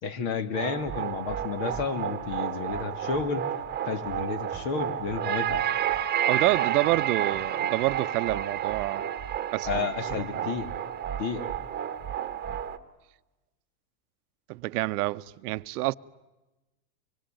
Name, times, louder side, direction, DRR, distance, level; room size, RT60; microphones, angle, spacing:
voice 1, 0.0-3.5 3.8-5.6 9.7-10.7 11.2-11.5, left 5 dB, 50° left, 2.6 m, -31 dB
sound 1, 0.5-12.8, right 10 dB, 20° right, 1.4 m, -31 dB
voice 2, 6.2-9.0 9.5-10.3 14.5-15.9, right 19 dB, 65° right, 0.9 m, -28 dB
25.5 x 25.0 x 9.1 m
supercardioid pair, 130°, 50 cm